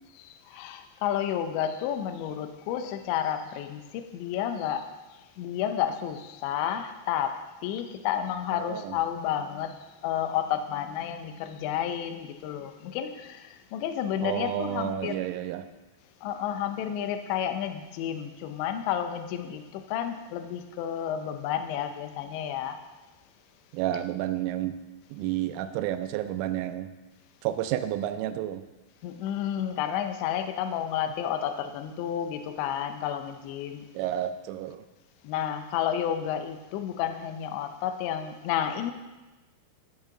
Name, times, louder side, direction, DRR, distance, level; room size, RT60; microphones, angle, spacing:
voice 1, 0.2-4.9 5.4-7.3 7.6-15.1 16.2-22.8 29.0-33.9 35.2-38.9, left 9 dB, 80° left, 7 dB, 2.6 m, -31 dB
voice 2, 8.5-9.0 14.2-15.6 23.7-24.8 25.1-26.9 27.4-28.6 33.9-34.8, right 12 dB, 85° right, 10 dB, 3.1 m, -30 dB
12.5 x 8.7 x 3.8 m, 1.1 s
omnidirectional pair, 5.8 m